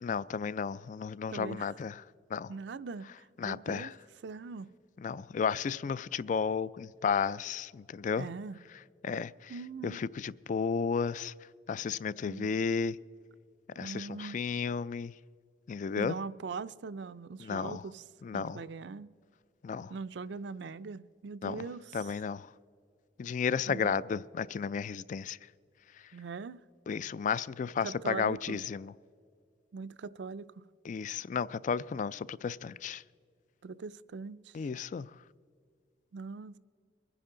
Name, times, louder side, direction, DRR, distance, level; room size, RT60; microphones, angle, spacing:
voice 1, 0.0-1.9 2.3-2.5 3.4-3.9 5.0-8.3 9.0-9.5 9.8-11.3 11.7-13.0 13.8-15.1 15.7-16.2 17.4-17.8 18.2-18.6 19.6-19.9 21.4-21.6 21.9-22.5 23.2-25.4 26.9-28.9 30.9-33.0 34.5-35.1, left 6 dB, 45° left, 0.3 m, -33 dB
voice 2, 1.3-1.7 2.5-3.9 4.2-4.7 8.2-8.6 9.5-10.0 12.2-12.5 13.8-14.4 16.0-18.0 18.3-19.1 19.9-22.2 23.7-24.0 26.1-26.6 27.8-28.6 29.7-30.6 33.6-34.6 36.1-36.6, right 4 dB, 70° right, 0.4 m, -41 dB
23.5 x 10.0 x 3.8 m
head